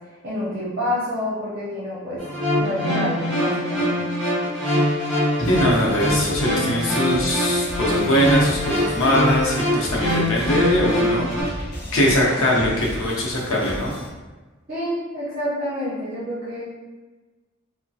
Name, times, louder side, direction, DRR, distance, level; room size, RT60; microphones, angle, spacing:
voice 1, 0.2-2.2 2.6-4.0 14.7-16.6, left 1 dB, 45° right, -9 dB, 0.7 m, -28 dB
sound 1, 2.2-11.4, equal, 5° left, 1.1 m, -23 dB
voice 2, 5.4-11.5 11.9-13.9, equal, 90° left, -3 dB, 0.7 m, -21 dB
sound 2, 5.4-14.1, equal, 50° left, 0.7 m, -35 dB
3.0 x 2.1 x 2.7 m, 1.3 s
head